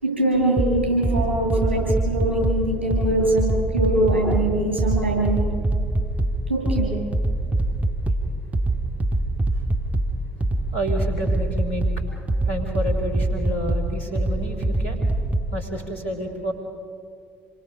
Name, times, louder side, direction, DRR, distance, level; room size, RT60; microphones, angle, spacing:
voice 1, 0.0-5.4 6.5-6.9, right 1 dB, 90° right, -2 dB, 7.5 m, -22 dB
sound 1, 0.6-15.6, right 1 dB, 25° right, 2.0 m, -24 dB
voice 2, 10.7-15.0 15.5-16.5, equal, 90° left, 2 dB, 3.5 m, -30 dB
28.5 x 23.0 x 5.5 m, 2.3 s
figure-of-eight pair, 50°, 6 cm